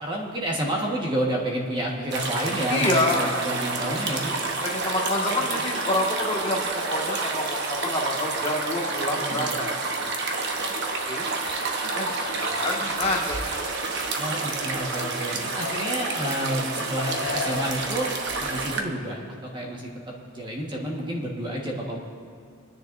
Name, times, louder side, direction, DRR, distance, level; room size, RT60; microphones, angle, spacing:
voice 1, 0.0-4.4 9.2-9.5 12.8-12.9 14.2-18.1 18.4-22.0, right 1 dB, 20° right, -2 dB, 1.4 m, -30 dB
sound 1, 2.1-18.8, right 3 dB, 55° right, 1.0 m, -29 dB
voice 2, 2.7-3.2 4.6-9.7 10.0-10.1 10.7-10.8 11.1-11.3 11.9-13.4, left 1 dB, 30° left, -2 dB, 1.7 m, -27 dB
sound 2, 12.1-13.1 13.5-13.6 15.4-16.6 17.0-17.9, left 4 dB, 55° left, 1.0 m, -33 dB
29.0 x 10.0 x 2.6 m, 2.1 s
head